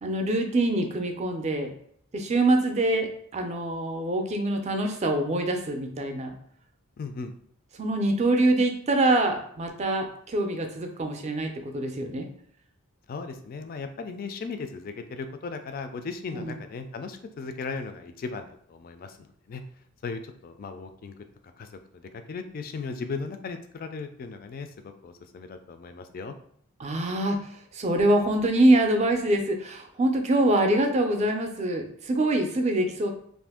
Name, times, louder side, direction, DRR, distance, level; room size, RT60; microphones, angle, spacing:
voice 1, 0.0-1.7 2.1-6.3 7.8-12.3 16.3-16.5 26.8-27.5 27.7-33.1, right 1 dB, 30° right, 4 dB, 0.4 m, -24 dB
voice 2, 7.0-7.3 13.1-19.6 20.0-21.2 21.6-26.3, left 4 dB, 40° left, 7 dB, 0.3 m, -37 dB
2.6 x 2.5 x 3.5 m, 0.66 s
head